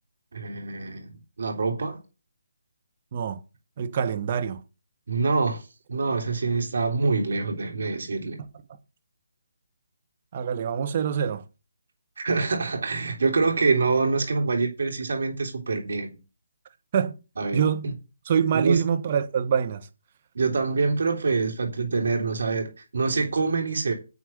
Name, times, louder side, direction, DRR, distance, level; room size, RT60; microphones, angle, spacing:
voice 1, 0.3-1.1 1.4-2.0 5.1-5.6 5.9-8.4 12.2-16.2 17.4-17.9 18.5-18.8 20.3-23.9, right 4 dB, 60° right, 3.4 m, -25 dB
voice 2, 3.8-4.6 8.4-8.5 10.3-11.4 16.9-17.2 17.5-17.9 18.2-19.9, right 7 dB, 35° right, 1.6 m, -25 dB
9.5 x 8.5 x 5.5 m
figure-of-eight pair, 145°, 0 cm